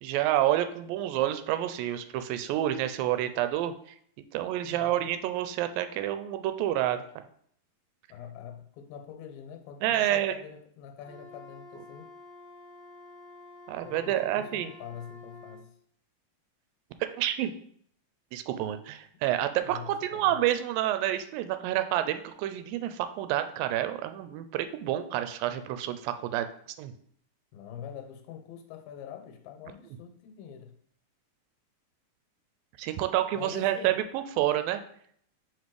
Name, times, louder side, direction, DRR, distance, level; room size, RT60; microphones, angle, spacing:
voice 1, 0.0-7.0 9.8-10.3 13.7-14.7 17.0-17.5 18.3-26.5 26.8-26.9 32.8-34.8, right 12 dB, 85° right, 10 dB, 2.2 m, -29 dB
voice 2, 4.6-5.1 8.1-12.1 13.8-15.8 19.6-20.3 27.5-30.7 33.4-34.0, left 8 dB, 80° left, 5 dB, 2.5 m, -45 dB
Wind instrument woodwind instrument, 11.0-15.6, left 2 dB, 45° left, 1.3 m, -49 dB
4.9 x 4.2 x 4.6 m, 0.63 s
omnidirectional pair, 4.1 m